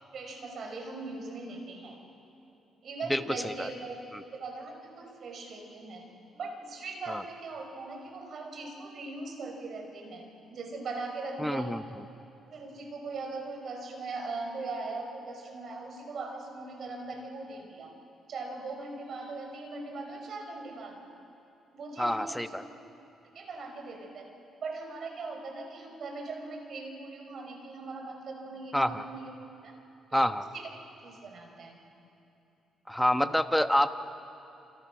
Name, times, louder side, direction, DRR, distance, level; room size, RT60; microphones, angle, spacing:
voice 1, 0.1-2.0 2.8-4.0 4.4-6.0 6.3-11.8 12.5-17.9 18.3-21.1 21.7-22.6 23.3-24.3 24.6-29.3 29.6-29.7 30.1-30.7 31.0-31.8, right 3 dB, 55° right, 3 dB, 5.8 m, -40 dB
voice 2, 3.1-3.7 7.1-7.2 11.4-11.8 22.0-22.6 28.7-29.0 30.1-30.4 32.9-33.9, equal, 5° left, 9 dB, 1.1 m, -27 dB
28.5 x 28.5 x 6.3 m, 2.8 s
cardioid pair, 90°, 0 cm